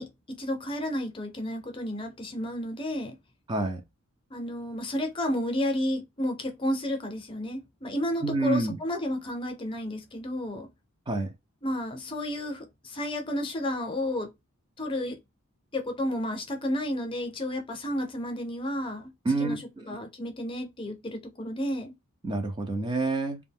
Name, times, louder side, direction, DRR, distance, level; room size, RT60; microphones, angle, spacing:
voice 1, 0.0-3.1 4.3-10.7 11.6-14.3 14.8-15.2 15.7-19.1 19.4-21.9, left 1 dB, 25° left, 0.6 m, -32 dB
voice 2, 3.5-3.8 8.2-8.8 11.1-11.3 19.2-19.6 19.9-20.0 22.2-23.4, right 3 dB, 20° right, 0.4 m, -27 dB
2.4 x 2.1 x 3.5 m
head